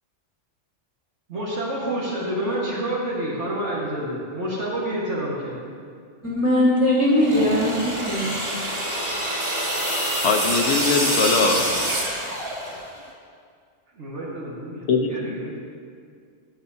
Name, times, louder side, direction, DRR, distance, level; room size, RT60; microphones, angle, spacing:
voice 1, 1.3-5.6 14.0-15.6, right 1 dB, 75° right, -7 dB, 2.0 m, -28 dB
voice 2, 6.2-8.3, left 1 dB, 15° left, -7 dB, 1.4 m, -20 dB
sound 1, 7.1-13.0, right 1 dB, 25° right, 1.5 m, -26 dB
voice 3, 10.2-11.7 12.5-12.6 14.9-15.1, left 4 dB, 65° left, 4 dB, 1.1 m, -21 dB
16.5 x 8.6 x 2.8 m, 2.1 s
omnidirectional pair, 1.2 m